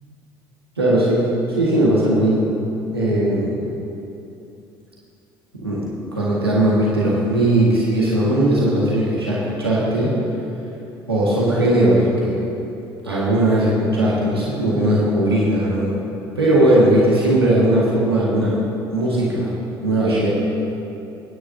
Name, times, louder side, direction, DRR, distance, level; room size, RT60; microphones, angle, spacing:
voice 1, 0.8-2.5 2.9-3.7 5.5-10.1 11.1-12.4 13.0-16.0 16.4-18.6 18.9-19.6 19.8-20.4, right 1 dB, 90° right, -6 dB, 1.7 m, -18 dB
26.0 x 9.8 x 2.7 m, 2.8 s
figure-of-eight pair, 55°, 13 cm